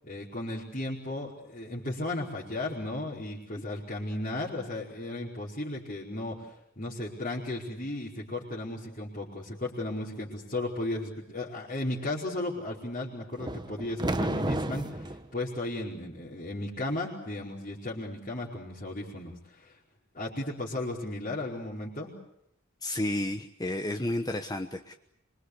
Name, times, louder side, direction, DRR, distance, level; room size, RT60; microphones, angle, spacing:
voice 1, 0.0-19.7 20.1-22.1, left 2 dB, 45° left, -6 dB, 5.0 m, -35 dB
sound 1, 13.4-15.2, right 1 dB, 20° right, 1.2 m, -31 dB
voice 2, 22.8-24.9, left 1 dB, 20° left, 6 dB, 1.2 m, -31 dB
26.0 x 23.5 x 8.2 m, 0.78 s
head